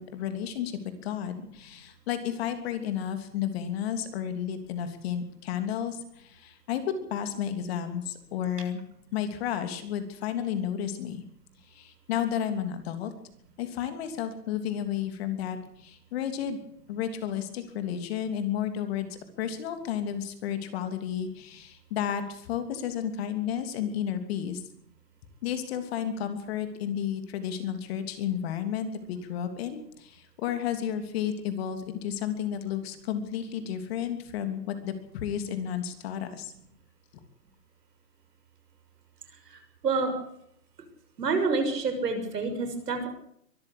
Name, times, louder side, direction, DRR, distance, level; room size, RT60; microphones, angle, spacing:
voice 1, 0.0-8.8 9.1-11.2 11.7-13.1 13.6-16.6 16.9-24.6 25.4-36.5, left 9 dB, 35° left, 8 dB, 3.1 m, -32 dB
voice 2, 41.2-43.1, right 4 dB, 70° right, 7 dB, 6.6 m, -27 dB
23.0 x 13.5 x 8.6 m, 0.71 s
hypercardioid pair, 145°, 50 cm